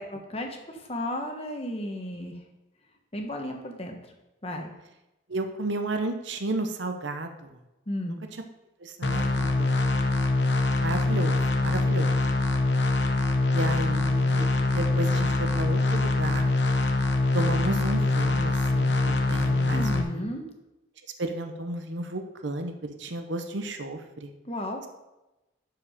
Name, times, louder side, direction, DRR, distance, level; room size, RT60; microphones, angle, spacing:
voice 1, 0.0-2.4 3.1-4.0 4.4-4.7 7.9-8.2 19.7-20.5 24.4-24.8, left 1 dB, 30° left, 3 dB, 1.2 m, -34 dB
voice 2, 5.3-7.5 8.8-9.7 10.8-12.1 13.5-16.5 17.3-20.3 21.2-24.3, right 2 dB, 65° right, 5 dB, 0.9 m, -33 dB
sound 1, 9.0-20.0, left 2 dB, 60° left, 1.0 m, -24 dB
12.0 x 4.9 x 5.1 m, 0.99 s
head